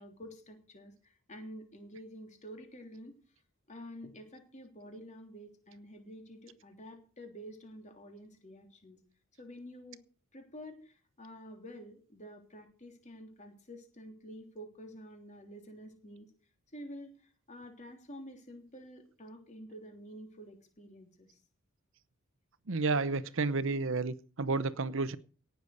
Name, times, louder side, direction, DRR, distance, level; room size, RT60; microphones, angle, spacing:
voice 1, 0.0-3.1 3.7-9.0 9.4-10.0 10.3-16.3 16.7-21.4, equal, 35° left, 4 dB, 3.3 m, -49 dB
voice 2, 22.7-25.2, right 3 dB, 60° right, 16 dB, 0.8 m, -31 dB
18.0 x 6.9 x 6.5 m, 0.40 s
head